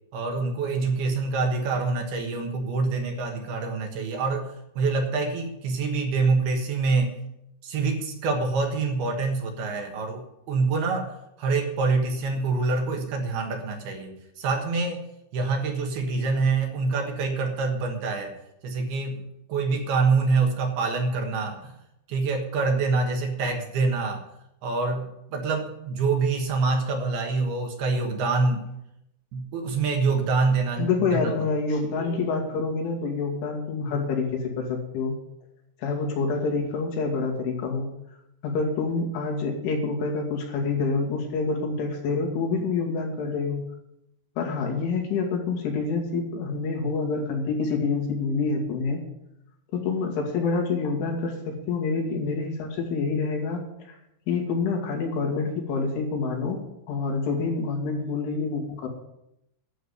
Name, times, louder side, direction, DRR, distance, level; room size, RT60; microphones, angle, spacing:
voice 1, 0.1-7.1 7.6-15.0 15.3-18.3 18.6-21.7 22.1-24.2 24.6-28.6 29.3-31.2, right 4 dB, 65° right, 3 dB, 3.0 m, -26 dB
voice 2, 30.8-35.2 35.8-37.9 38.4-43.6 44.4-49.0 49.7-54.0 54.3-56.6 56.9-58.9, left 4 dB, 85° left, 0 dB, 4.9 m, -27 dB
11.5 x 7.2 x 9.4 m, 0.84 s
omnidirectional pair, 5.4 m